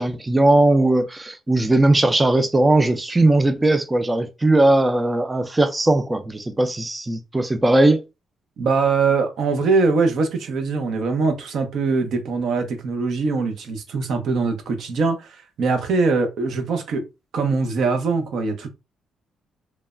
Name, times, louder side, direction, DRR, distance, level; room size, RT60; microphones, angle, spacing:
voice 1, 0.0-8.0, right 2 dB, 15° right, 0.3 m, -18 dB
voice 2, 8.6-17.1 17.3-18.7, right 4 dB, 70° right, 0.6 m, -22 dB
3.1 x 2.1 x 2.4 m
cardioid pair, 90°, 0 cm